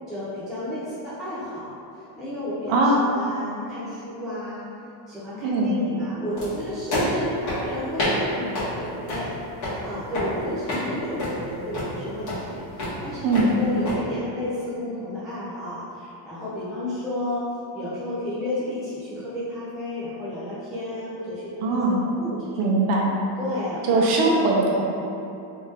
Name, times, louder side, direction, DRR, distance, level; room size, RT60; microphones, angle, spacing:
voice 1, 0.1-4.7 5.1-9.3 9.8-17.4 17.7-21.8 22.0-22.6 23.4-24.5, left 1 dB, ahead, -13 dB, 0.3 m, -32 dB
voice 2, 2.7-3.0 5.4-5.8 13.2-13.5 21.6-22.0 22.6-23.1 23.9-24.8, right 2 dB, 85° right, -2 dB, 0.8 m, -20 dB
sound 1, 6.4-14.0, left 1 dB, 35° left, 1.4 m, -29 dB
3.4 x 2.7 x 3.3 m, 2.7 s
cardioid pair, 150°, 49 cm